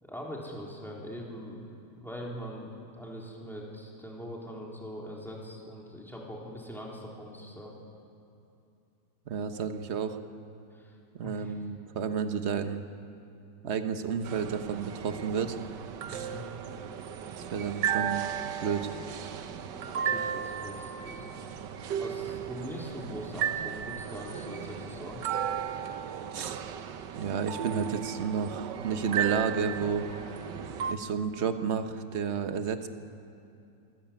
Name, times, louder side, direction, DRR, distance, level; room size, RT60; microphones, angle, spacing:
voice 1, 0.0-1.6 2.0-7.8 10.7-10.9 11.2-11.5 16.1-16.4 19.9-21.3 22.0-25.4, equal, ahead, -3 dB, 3.5 m, -42 dB
voice 2, 9.3-10.2 11.2-12.8 13.6-15.6 16.1-16.3 17.4-18.2 18.6-18.9 26.3-26.6 27.2-30.1 30.9-32.9, right 6 dB, 45° right, 8 dB, 1.1 m, -31 dB
sound 1, 14.2-30.9, right 8 dB, 80° right, 1.5 m, -35 dB
25.5 x 13.5 x 8.7 m, 2.7 s
omnidirectional pair, 1.9 m